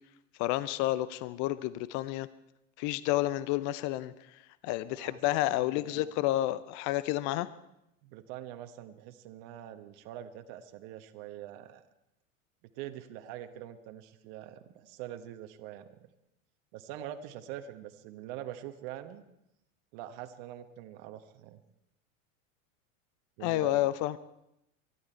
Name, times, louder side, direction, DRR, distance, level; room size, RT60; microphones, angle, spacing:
voice 1, 0.4-2.3 2.8-4.1 4.6-7.5 23.4-24.2, left 16 dB, 45° left, 16 dB, 0.7 m, -30 dB
voice 2, 5.5-6.1 8.0-11.8 12.7-16.0 16.7-19.2 19.9-21.6 23.4-23.9, right 12 dB, 55° right, 8 dB, 1.3 m, -44 dB
23.5 x 13.0 x 4.5 m, 0.84 s
hypercardioid pair, 85°, 40 cm